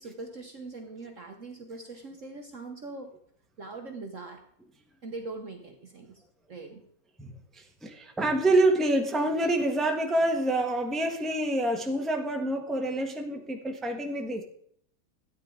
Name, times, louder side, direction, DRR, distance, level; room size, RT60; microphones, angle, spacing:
voice 1, 0.0-3.1 3.6-4.4 5.0-6.2 6.5-6.8, right 3 dB, 50° right, 4 dB, 1.2 m, -41 dB
voice 2, 7.2-14.4, right 1 dB, ahead, 3 dB, 1.1 m, -27 dB
13.0 x 9.8 x 3.8 m, 0.64 s
omnidirectional pair, 2.1 m